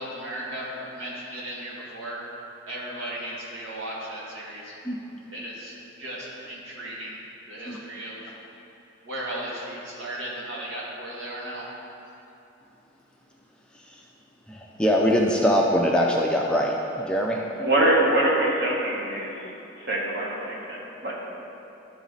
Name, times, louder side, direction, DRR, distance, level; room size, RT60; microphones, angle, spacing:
voice 1, 0.0-2.2 2.7-4.7 5.3-7.2 7.5-8.2 9.0-11.7, right 1 dB, 75° right, -5 dB, 1.8 m, -36 dB
voice 2, 14.5-17.4, equal, 5° left, -2 dB, 0.4 m, -23 dB
voice 3, 17.6-19.3 19.8-21.1, right 1 dB, 50° right, -4 dB, 1.3 m, -24 dB
11.5 x 4.0 x 3.9 m, 2.9 s
head